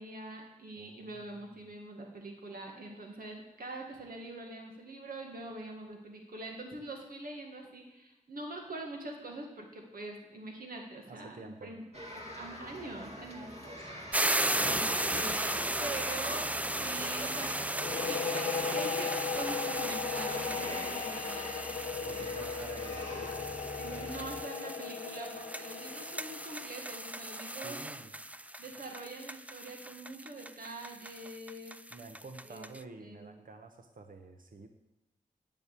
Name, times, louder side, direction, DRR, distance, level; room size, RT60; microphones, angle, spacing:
voice 1, 0.0-11.8 12.1-14.3 14.6-17.6 17.9-21.7 22.0-22.4 23.8-27.8 28.6-31.8 32.4-32.7 33.0-33.4, right 2 dB, 90° right, 1 dB, 1.9 m, -44 dB
voice 2, 0.8-1.6 11.1-11.7 13.8-14.2 22.0-24.2 27.5-28.1 31.9-34.7, right 3 dB, 70° right, 5 dB, 1.1 m, -50 dB
sound 1, 11.9-24.4, equal, 45° right, 2.2 m, -44 dB
sound 2, 14.1-32.8, right 1 dB, 10° right, 0.4 m, -36 dB
sound 3, 17.7-27.3, left 6 dB, 60° left, 0.4 m, -37 dB
10.5 x 8.7 x 8.3 m, 0.94 s
wide cardioid pair, 65°, 15 cm